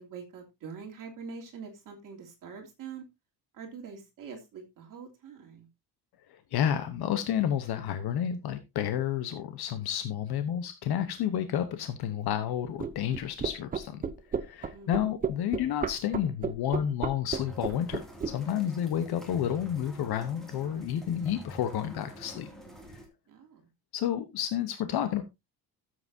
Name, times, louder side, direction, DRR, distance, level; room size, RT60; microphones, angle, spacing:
voice 1, 0.0-3.0 3.5-5.7 14.7-15.0 23.3-23.7, right 5 dB, 50° right, 3.0 m, -44 dB
voice 2, 6.3-14.0 14.3-22.5 23.9-25.2, left 10 dB, 60° left, 1.0 m, -30 dB
sound 1, 12.8-18.3, right 6 dB, 20° right, 0.5 m, -32 dB
sound 2, 17.3-23.1, right 1 dB, ahead, 2.4 m, -47 dB
13.0 x 7.9 x 2.7 m
cardioid pair, 180°, 42 cm